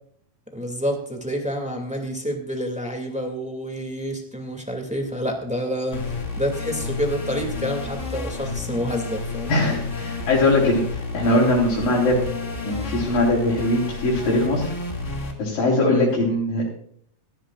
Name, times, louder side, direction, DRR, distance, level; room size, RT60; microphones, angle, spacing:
voice 1, 0.5-9.5 15.9-16.1, equal, 5° right, 2 dB, 1.1 m, -28 dB
sound 1, 5.9-15.3, left 3 dB, 25° left, 1.9 m, -31 dB
voice 2, 9.5-12.2 12.6-14.7 15.0-16.7, left 1 dB, 55° left, -5 dB, 5.7 m, -21 dB
17.5 x 15.5 x 2.5 m, 0.62 s
omnidirectional pair, 4.8 m